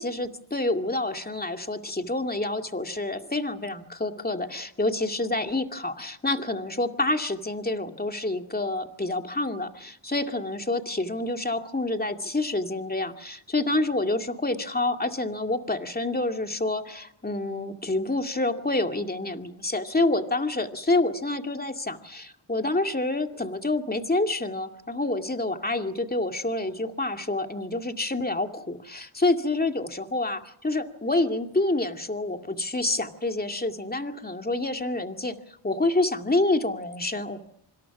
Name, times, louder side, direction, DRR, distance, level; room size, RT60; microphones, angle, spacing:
voice 1, 0.0-35.4 35.6-37.4, left 2 dB, 20° left, 5 dB, 2.4 m, -28 dB
26.0 x 26.0 x 6.1 m, 0.72 s
cardioid pair, 65°, 48 cm